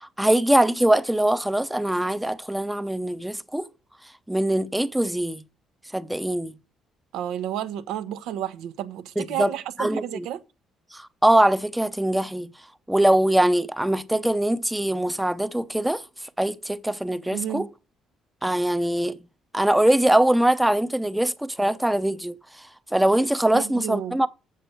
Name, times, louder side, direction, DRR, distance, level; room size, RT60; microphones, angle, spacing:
voice 1, 0.0-3.7 4.3-5.4 5.9-6.5 9.2-9.5 9.8-10.3 10.9-12.5 12.9-16.0 16.4-17.7 18.4-19.2 19.5-22.4 22.9-24.3, right 1 dB, 5° right, 0.7 m, -22 dB
voice 2, 7.1-10.4 17.3-17.7 23.5-24.2, right 11 dB, 85° right, 0.9 m, -31 dB
7.7 x 6.7 x 7.0 m
cardioid pair, 85°, 0 cm